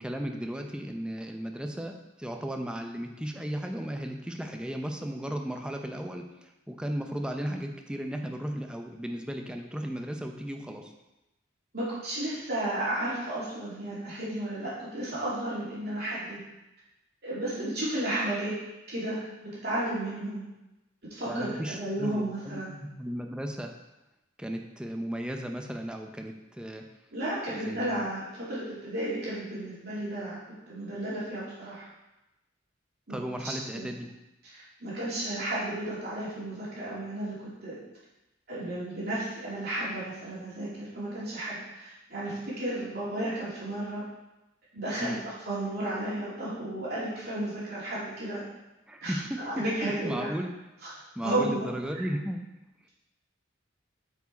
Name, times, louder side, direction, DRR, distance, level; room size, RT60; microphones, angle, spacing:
voice 1, 0.0-10.9 21.3-23.7 24.4-26.9 27.5-28.1 33.1-34.1 45.0-45.2 48.9-50.5 51.2-52.5, equal, 5° right, 3 dB, 0.6 m, -35 dB
voice 2, 11.7-16.4 17.2-18.5 18.9-20.4 21.1-22.7 27.1-30.4 30.7-31.9 33.1-33.2 33.4-33.9 34.4-37.8 38.5-44.0 44.7-45.2 45.5-48.4 49.0-50.3 50.8-52.0, right 1 dB, 55° right, -8 dB, 2.7 m, -33 dB
8.2 x 4.7 x 4.1 m, 0.97 s
head